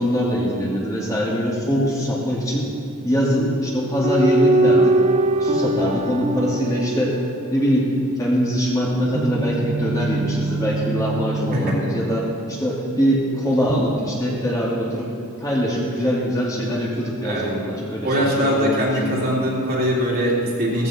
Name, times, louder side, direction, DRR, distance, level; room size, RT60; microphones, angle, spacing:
voice 1, 0.0-2.7 3.0-5.0 5.4-7.2 7.5-7.9 8.2-15.1 15.4-19.3, equal, 15° left, -5 dB, 2.6 m, -22 dB
sound 1, 4.0-7.7 9.1-12.9 13.7-14.9, right 2 dB, 30° right, 0.5 m, -23 dB
voice 2, 18.0-20.9, equal, 45° right, -4 dB, 3.3 m, -22 dB
16.0 x 15.0 x 4.4 m, 2.4 s
head